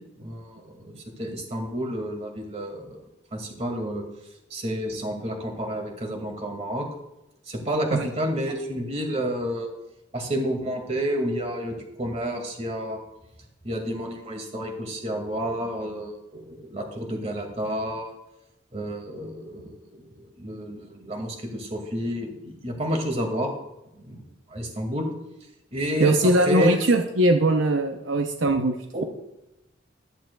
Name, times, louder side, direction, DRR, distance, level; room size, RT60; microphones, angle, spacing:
voice 1, 0.2-0.9 1.2-3.0 3.3-4.0 4.5-6.9 7.5-9.7 10.1-13.0 13.6-18.1 18.7-23.5 24.0-24.2 24.5-25.1 25.7-26.1 26.5-26.8 28.9-29.0, equal, 35° right, 3 dB, 2.1 m, -30 dB
voice 2, 26.0-28.8, right 1 dB, 75° right, 5 dB, 0.7 m, -20 dB
13.5 x 12.0 x 2.3 m, 0.91 s
head